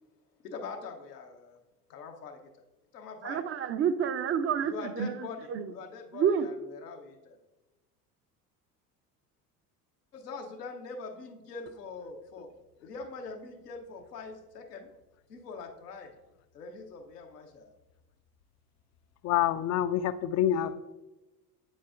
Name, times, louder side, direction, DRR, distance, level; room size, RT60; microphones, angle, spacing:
voice 1, 0.4-1.6 1.9-2.6 2.9-3.5 4.6-7.4 10.1-12.5 12.8-14.9 15.3-16.1 16.5-17.7 20.5-20.7, left 4 dB, 85° left, 3 dB, 1.0 m, -43 dB
voice 2, 3.2-5.7 6.1-6.5, right 7 dB, 30° right, 12 dB, 0.5 m, -29 dB
voice 3, 19.2-20.7, left 11 dB, 35° left, 14 dB, 0.4 m, -27 dB
8.7 x 7.6 x 2.5 m, 1.1 s
hypercardioid pair, 70°, 47 cm